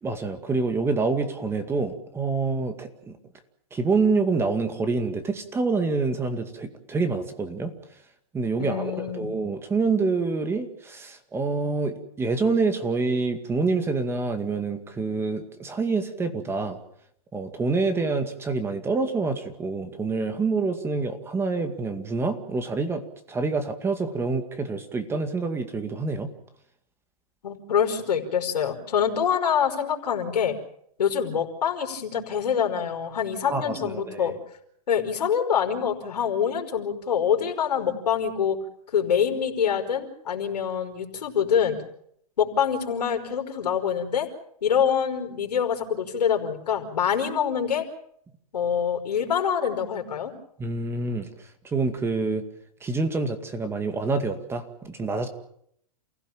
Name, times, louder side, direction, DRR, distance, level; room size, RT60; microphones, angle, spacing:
voice 1, 0.0-3.2 3.7-7.7 8.3-16.8 17.3-23.0 23.3-26.3 33.5-34.4 50.6-52.4 52.8-55.3, right 3 dB, 10° right, 8 dB, 2.1 m, -27 dB
voice 2, 8.6-9.3 27.4-30.5 31.0-34.3 34.9-38.6 38.9-41.8 42.4-44.3 44.6-47.8 48.5-50.3, left 8 dB, 90° left, 3 dB, 5.0 m, -25 dB
29.0 x 16.5 x 7.4 m, 0.70 s
hypercardioid pair, 145°, 20 cm